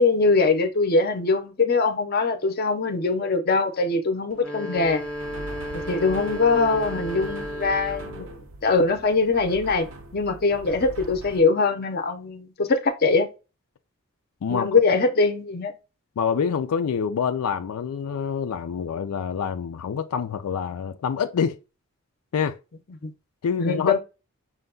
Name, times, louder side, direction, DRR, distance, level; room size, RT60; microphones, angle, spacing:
voice 1, 0.0-5.0 5.7-8.3 8.6-9.9 10.1-13.3 14.5-15.7 23.0-23.1 23.6-24.0, left 3 dB, 45° left, 0.6 m, -22 dB
sound 1, 4.3-8.3, equal, 5° left, 0.6 m, -34 dB
sound 2, 4.8-11.4, right 2 dB, 60° right, 0.6 m, -41 dB
voice 2, 16.2-21.6 22.3-22.6 23.4-24.0, left 6 dB, 80° left, 0.4 m, -26 dB
6.2 x 2.2 x 3.7 m
head